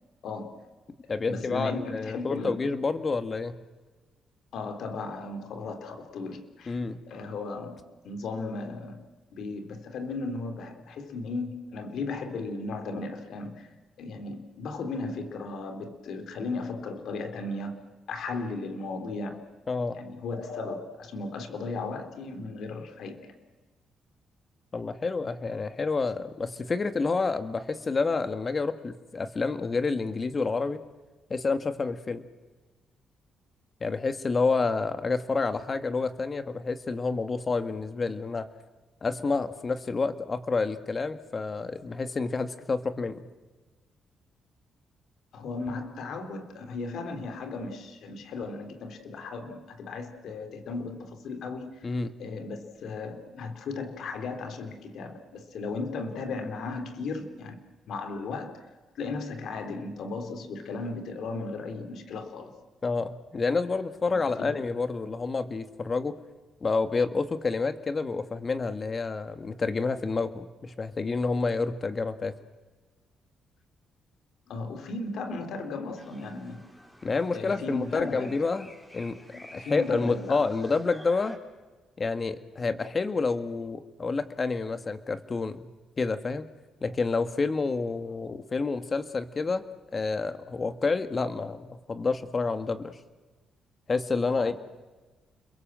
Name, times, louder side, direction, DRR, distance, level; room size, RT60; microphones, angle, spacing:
voice 1, 0.2-0.6 1.2-2.6 4.5-6.8 7.1-9.0 9.3-13.7 14.0-17.8 18.1-19.5 19.9-23.3 45.3-51.9 52.2-57.6 57.9-58.7 59.0-62.6 64.1-64.6 74.5-76.6 77.3-78.4 79.3-80.4 94.4-94.5, left 3 dB, 75° left, 7 dB, 3.5 m, -36 dB
voice 2, 1.1-3.6 6.7-7.0 19.7-20.0 24.7-30.8 31.3-32.2 33.8-38.5 39.0-43.3 51.8-52.2 62.8-66.2 66.6-72.3 77.0-78.7 78.9-79.2 79.5-81.4 82.0-85.7 86.0-86.5 86.8-89.6 89.9-93.0 93.9-94.5, left 4 dB, 35° left, 10 dB, 1.9 m, -29 dB
sound 1, 75.9-81.4, equal, 10° left, 4.2 m, -51 dB
29.5 x 22.5 x 7.6 m, 1.2 s
cardioid pair, 100°, 0 cm